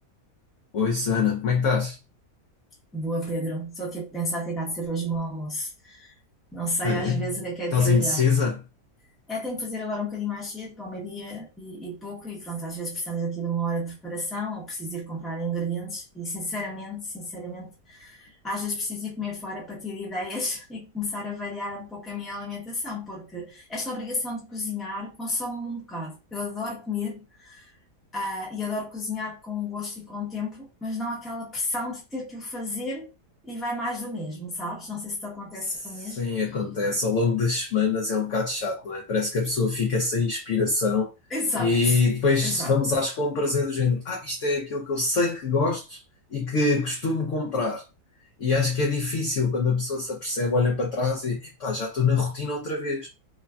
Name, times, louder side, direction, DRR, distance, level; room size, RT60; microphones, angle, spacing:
voice 1, 0.7-2.0 6.8-7.3 7.7-8.6 36.2-41.1 41.5-46.0 46.3-47.8 48.4-53.1, left 4 dB, 70° left, 0.7 m, -24 dB
voice 2, 2.9-6.1 6.5-8.2 9.3-27.7 28.1-33.1 33.4-36.3 41.3-42.0 42.4-42.8, left 1 dB, ahead, 0.6 m, -32 dB
3.2 x 2.2 x 2.2 m
omnidirectional pair, 1.8 m